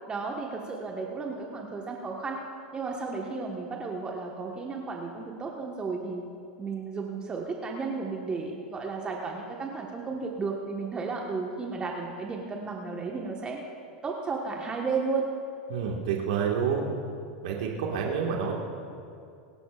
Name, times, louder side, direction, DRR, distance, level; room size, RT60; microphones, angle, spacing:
voice 1, 0.1-2.4 2.7-6.2 6.6-13.6 14.0-15.3, right 4 dB, 25° right, 0 dB, 1.4 m, -33 dB
voice 2, 15.7-16.9 17.4-18.5, right 7 dB, 65° right, -1 dB, 1.8 m, -28 dB
24.0 x 12.0 x 2.5 m, 2.5 s
hypercardioid pair, 95°, 4 cm